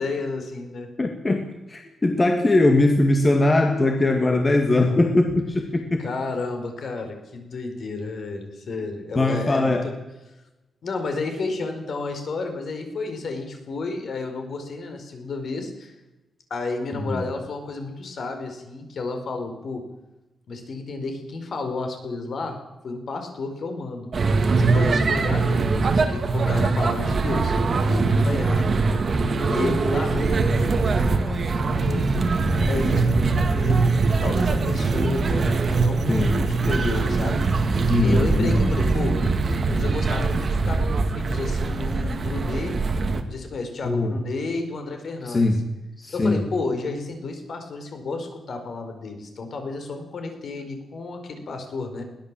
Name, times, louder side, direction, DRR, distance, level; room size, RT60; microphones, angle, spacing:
voice 1, 0.0-0.9 6.0-9.9 10.8-15.9 16.5-19.8 20.5-22.6 22.8-24.1 24.6-27.5 27.8-28.6 29.5-32.2 32.7-37.4 38.0-39.2 39.7-42.7 43.3-45.5 46.1-52.0, left 3 dB, 55° left, 6 dB, 4.8 m, -31 dB
voice 2, 1.0-6.1 9.2-9.9 16.9-17.2 29.6-29.8 36.1-36.5 37.9-38.7 43.8-44.1 45.2-45.7 46.0-46.5, left 2 dB, 20° left, 4 dB, 2.1 m, -21 dB
sound 1, 24.1-43.2, right 3 dB, 40° right, 2.1 m, -22 dB
21.5 x 17.0 x 7.7 m, 1.0 s
wide cardioid pair, 155°, 0 cm